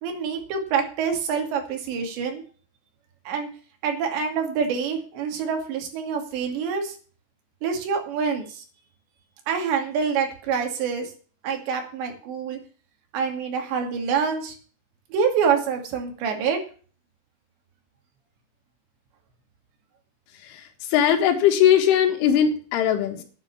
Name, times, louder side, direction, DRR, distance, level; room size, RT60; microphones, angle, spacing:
voice 1, 0.0-2.4 3.3-3.5 3.8-7.0 7.6-8.6 9.5-11.1 11.4-12.6 13.1-14.6 15.1-16.6, right 6 dB, 70° right, 4 dB, 4.6 m, -26 dB
voice 2, 20.4-23.2, left 9 dB, 90° left, 4 dB, 4.1 m, -20 dB
9.9 x 9.6 x 7.0 m, 0.40 s
omnidirectional pair, 5.5 m